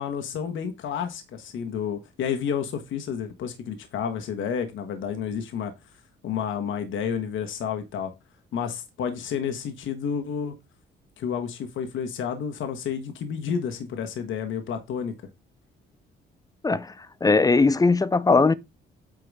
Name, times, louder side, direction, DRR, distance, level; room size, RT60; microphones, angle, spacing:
voice 1, 0.0-5.7 6.2-8.1 8.5-10.5 11.2-15.1, left 7 dB, 75° left, 1.4 m, -30 dB
voice 2, 16.6-16.9 17.2-18.5, left 3 dB, 20° left, 0.6 m, -19 dB
8.8 x 3.9 x 4.8 m
cardioid pair, 90°, 20 cm